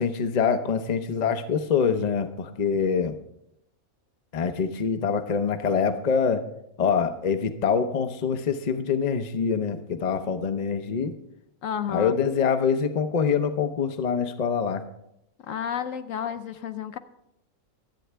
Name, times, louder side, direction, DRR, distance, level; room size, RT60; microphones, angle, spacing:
voice 1, 0.0-3.1 4.3-6.4 6.8-11.1 11.9-14.8, left 6 dB, 35° left, 8 dB, 0.7 m, -25 dB
voice 2, 11.6-12.1 15.5-17.0, left 8 dB, 70° left, 10 dB, 1.0 m, -31 dB
25.0 x 8.5 x 3.4 m, 0.81 s
omnidirectional pair, 1.5 m